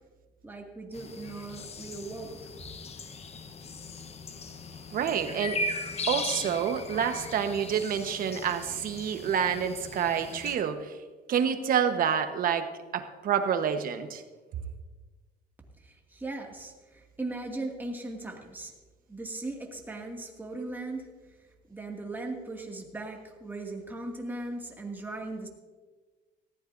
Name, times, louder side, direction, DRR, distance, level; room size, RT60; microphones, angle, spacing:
voice 1, 0.4-2.4 15.8-18.7 19.1-21.1 21.7-25.5, right 2 dB, 10° right, 0 dB, 2.2 m, -38 dB
sound 1, 0.9-10.6, left 2 dB, 40° left, 1.0 m, -38 dB
voice 2, 4.9-5.7 6.1-11.0 11.3-12.7 12.9-14.2, right 8 dB, 55° right, 8 dB, 1.2 m, -28 dB
18.5 x 15.0 x 2.7 m, 1.3 s
cardioid pair, 110°, 17 cm